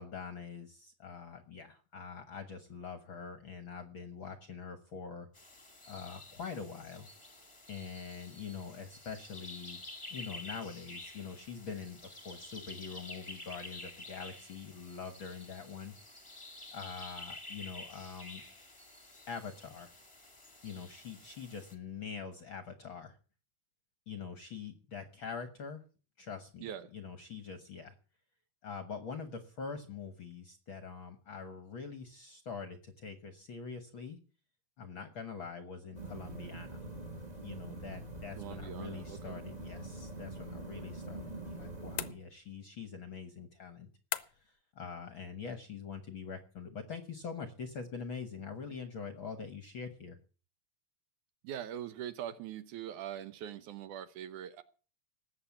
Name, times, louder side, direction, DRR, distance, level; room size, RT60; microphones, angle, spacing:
voice 1, 0.0-5.3 5.9-7.1 7.7-9.8 10.1-16.3 16.7-18.4 19.2-19.9 20.6-23.2 24.1-25.8 26.2-27.9 28.6-34.2 34.8-36.8 37.4-43.9 44.3-50.2, left 6 dB, 55° left, 9 dB, 1.5 m, -44 dB
sound 1, 5.3-21.7, left 2 dB, 15° left, 1.4 m, -50 dB
sound 2, 35.9-42.1, right 2 dB, 20° right, 1.2 m, -44 dB
voice 2, 38.4-39.4 51.4-54.6, right 10 dB, 70° right, 12 dB, 2.2 m, -42 dB
sound 3, 42.0-42.7 44.1-44.6, left 14 dB, 70° left, 1.8 m, -40 dB
19.0 x 8.0 x 7.2 m, 0.37 s
omnidirectional pair, 3.9 m